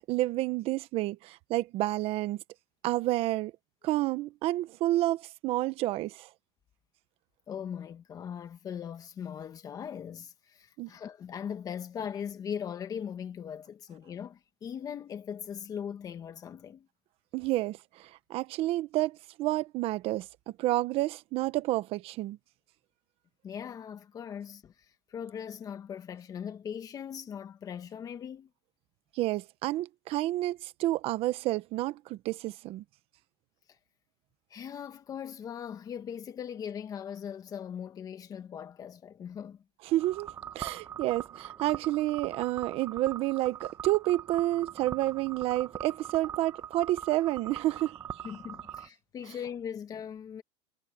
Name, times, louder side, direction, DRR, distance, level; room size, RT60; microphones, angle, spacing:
voice 1, 0.1-2.4 2.8-3.5 3.8-6.3 10.8-10.9 17.3-20.3 20.6-22.4 29.1-32.8 39.8-48.0, right 16 dB, 40° right, 1.1 m, -30 dB
voice 2, 7.5-16.9 23.4-28.5 34.5-39.6 48.2-50.4, left 8 dB, 25° left, 1.5 m, -40 dB
sound 1, 40.0-48.9, right 9 dB, 20° right, 1.1 m, -42 dB
supercardioid pair, 155°, 14 cm